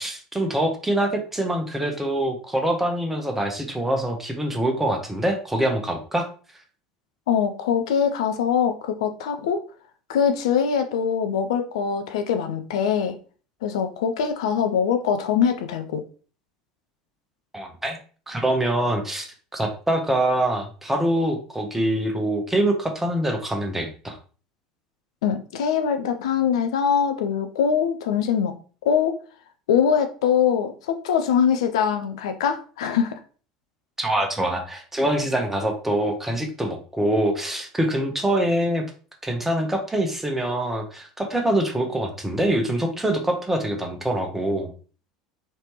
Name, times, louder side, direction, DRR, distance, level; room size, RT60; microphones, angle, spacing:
voice 1, 0.0-6.3 17.5-18.0 18.3-24.2 34.0-38.8 39.2-44.7, right 1 dB, 10° right, 3 dB, 0.8 m, -24 dB
voice 2, 7.3-9.6 10.1-13.2 13.6-16.0 25.2-28.5 28.8-29.2 29.7-33.2, left 7 dB, 70° left, 7 dB, 0.4 m, -23 dB
3.2 x 2.8 x 3.0 m, 0.38 s
figure-of-eight pair, 70°, 3 cm